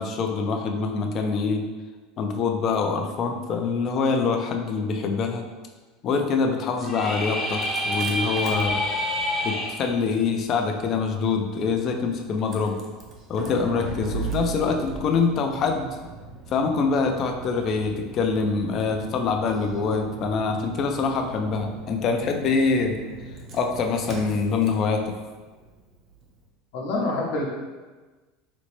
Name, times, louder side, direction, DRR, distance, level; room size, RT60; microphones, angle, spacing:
voice 1, 0.0-1.7 2.2-5.4 6.0-8.8 9.4-12.8 13.3-15.9 16.5-23.0 23.5-25.2, left 4 dB, 35° left, 4 dB, 0.3 m, -25 dB
sound 1, 6.8-9.7, left 1 dB, 10° left, 0.7 m, -27 dB
Engine starting, 7.4-26.4, right 4 dB, 30° right, 0.5 m, -39 dB
voice 2, 26.7-27.5, left 2 dB, 65° left, -2 dB, 0.8 m, -27 dB
4.0 x 2.0 x 3.0 m, 1.3 s
supercardioid pair, 155°, 0 cm